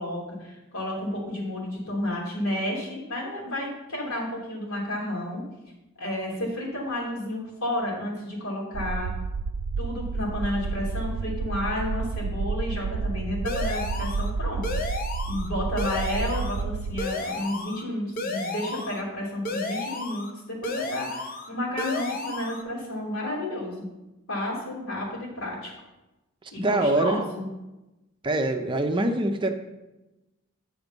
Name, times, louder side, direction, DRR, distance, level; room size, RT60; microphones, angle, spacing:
voice 1, 0.0-5.4 6.0-9.1 9.8-14.6 15.2-23.9 24.3-25.7 26.5-27.5, left 1 dB, 75° left, -3 dB, 3.0 m, -31 dB
sound 1, 8.7-17.0, right 4 dB, 70° right, 0.3 m, -30 dB
sound 2, 13.5-14.3 14.6-15.5 15.8-16.6 17.0-17.8 18.2-19.0 19.5-20.3 20.6-21.5 21.8-22.6, left 2 dB, 45° left, 0.8 m, -32 dB
voice 2, 26.6-27.2 28.2-29.5, right 2 dB, 25° right, 5 dB, 0.6 m, -24 dB
9.3 x 5.0 x 5.3 m, 1.0 s
head